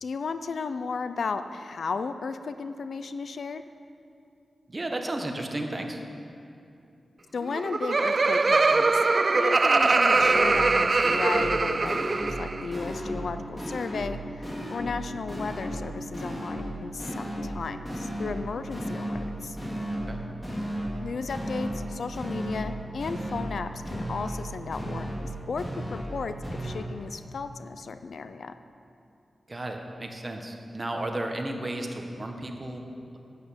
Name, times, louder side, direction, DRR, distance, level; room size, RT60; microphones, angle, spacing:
voice 1, 0.0-3.6 7.3-9.0 9.3-19.6 21.0-25.6 25.9-28.5, left 4 dB, 75° left, 10 dB, 0.5 m, -34 dB
voice 2, 4.7-6.0 19.9-20.2 29.5-32.8 33.1-33.2, right 1 dB, 35° right, 3 dB, 1.5 m, -33 dB
Laughter, 7.4-12.7, right 3 dB, 50° right, 0.4 m, -22 dB
sound 1, 9.8-9.9 10.1-10.7 11.0-11.6 11.8-12.4 12.7-13.3 13.6-14.1 14.4-15.0 15.3-15.9 16.1-16.7 17.0-17.6 17.8-18.4 18.7-19.3 19.6-20.1 20.4-21.0 21.3-21.9 22.1-22.7 23.0-23.6 23.8-24.4 24.7-25.3 25.6-26.1 26.4-26.8, equal, 20° left, 3.5 m, -34 dB
11.0 x 9.1 x 7.3 m, 2.6 s
cardioid pair, 60°, 0 cm